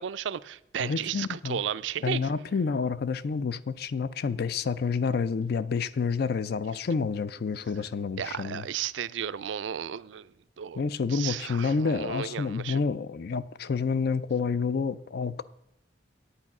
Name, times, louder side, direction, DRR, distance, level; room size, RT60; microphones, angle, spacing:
voice 1, 0.0-2.2 8.2-10.3 10.6-10.8 11.1-12.8, right 8 dB, 85° right, 0.4 m, -33 dB
voice 2, 0.8-1.6 2.0-8.7 10.8-15.4, left 5 dB, 60° left, 0.4 m, -29 dB
8.8 x 8.5 x 5.9 m
head